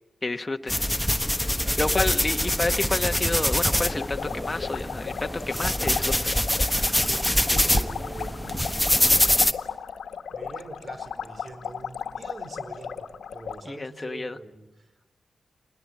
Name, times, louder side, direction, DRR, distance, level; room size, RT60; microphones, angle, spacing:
voice 1, 0.2-0.8 1.8-6.8 13.6-14.4, left 2 dB, 30° left, 6 dB, 1.3 m, -30 dB
sound 1, 0.7-9.5, left 1 dB, 5° left, 1.3 m, -24 dB
voice 2, 1.5-2.0 7.1-8.9 10.3-15.1, right 2 dB, 55° right, 7 dB, 4.7 m, -43 dB
sound 2, 3.6-13.6, left 7 dB, 85° left, 1.4 m, -36 dB
27.0 x 20.5 x 8.7 m, 1.1 s
cardioid pair, 55°, 0 cm